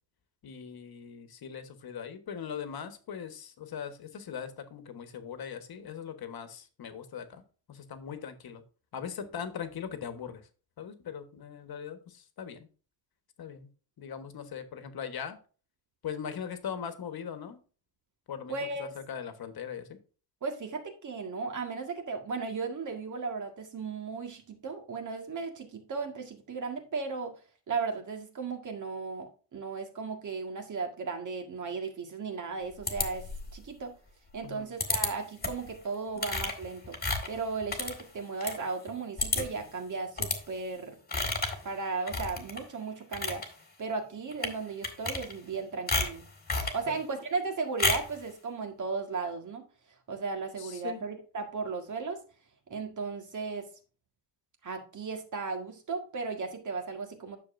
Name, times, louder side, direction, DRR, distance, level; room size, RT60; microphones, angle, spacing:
voice 1, 0.4-7.4 7.7-8.6 8.9-10.4 10.8-12.7 13.4-13.7 14.0-15.4 16.0-17.6 18.3-18.5 18.8-20.0 34.4-34.7 46.9-47.0 50.6-51.0, left 7 dB, 60° left, 8 dB, 1.4 m, -40 dB
voice 2, 18.5-18.9 20.4-27.3 27.7-33.9 34.3-37.0 37.3-41.0 41.6-43.5 43.8-46.2 46.7-49.7 50.1-52.2 52.7-53.7 54.6-57.4, right 4 dB, 45° right, 4 dB, 1.9 m, -36 dB
sound 1, 32.9-33.6 34.8-35.1 35.4-35.7 36.2-38.6 38.9-39.0 39.2-39.6 40.2-40.4 41.1-41.6 42.1-42.6 43.0-43.5 44.3-44.6 44.8-45.6 45.9-46.8 47.8-48.2, left 3 dB, 20° left, 1.8 m, -31 dB
10.0 x 6.9 x 2.6 m, 0.36 s
wide cardioid pair, 145°, 42 cm